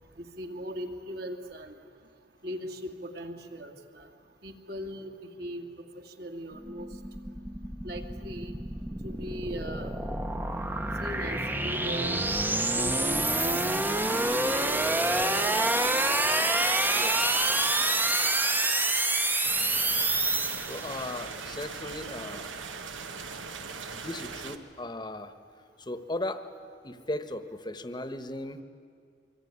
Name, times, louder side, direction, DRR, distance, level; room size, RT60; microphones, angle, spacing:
voice 1, 0.2-1.7 2.4-4.1 4.4-5.7 6.1-6.9 7.8-8.5 9.0-9.9 11.0-13.6 13.9-14.8, equal, 55° right, 4 dB, 2.4 m, -39 dB
sound 1, 6.5-21.1, right 2 dB, 10° right, 0.9 m, -27 dB
voice 2, 16.9-17.3 20.6-22.5 23.9-25.3 25.8-26.5 26.8-28.6, left 1 dB, 25° left, 10 dB, 1.2 m, -37 dB
sound 2, 19.4-24.6, right 5 dB, 85° right, 1.6 m, -40 dB
25.0 x 24.0 x 9.7 m, 2.2 s
head